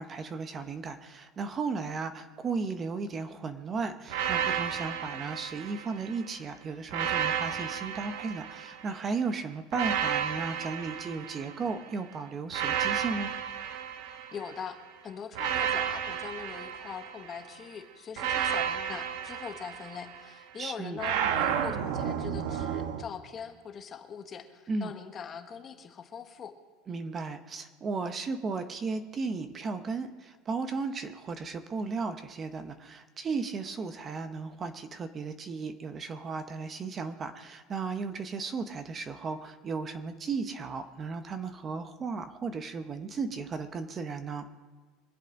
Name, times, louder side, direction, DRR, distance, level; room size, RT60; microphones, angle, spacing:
voice 1, 0.0-13.3 20.6-21.0 24.7-24.9 26.9-44.4, right 4 dB, 20° right, 9 dB, 0.7 m, -35 dB
sound 1, 4.1-6.2 6.9-9.0 9.7-11.9 12.5-14.7 15.3-17.5 18.2-20.3 21.0-23.0, right 8 dB, 70° right, 1.2 m, -32 dB
voice 2, 14.3-14.8 15.0-26.5, left 7 dB, 25° left, 7 dB, 1.1 m, -42 dB
24.5 x 8.3 x 5.2 m, 1.4 s
supercardioid pair, 160°, 0 cm